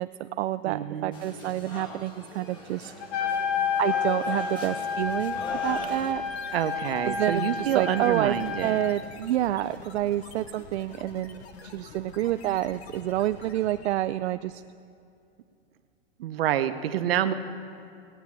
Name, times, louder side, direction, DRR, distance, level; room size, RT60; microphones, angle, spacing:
voice 1, 0.0-2.9 3.8-6.2 7.0-8.3 8.6-14.6, right 14 dB, 80° right, 11 dB, 0.5 m, -28 dB
voice 2, 0.7-1.3 5.9-6.0 6.5-8.8 16.2-17.3, right 11 dB, 65° right, 10 dB, 0.9 m, -28 dB
sound 1, 1.1-6.1, left 1 dB, 15° left, 1.3 m, -41 dB
Trumpet, 3.0-8.8, left 6 dB, 35° left, 1.1 m, -30 dB
sound 2, 5.0-14.1, left 4 dB, 75° left, 1.6 m, -47 dB
17.5 x 9.1 x 7.3 m, 2.5 s
supercardioid pair, 170°, 32 cm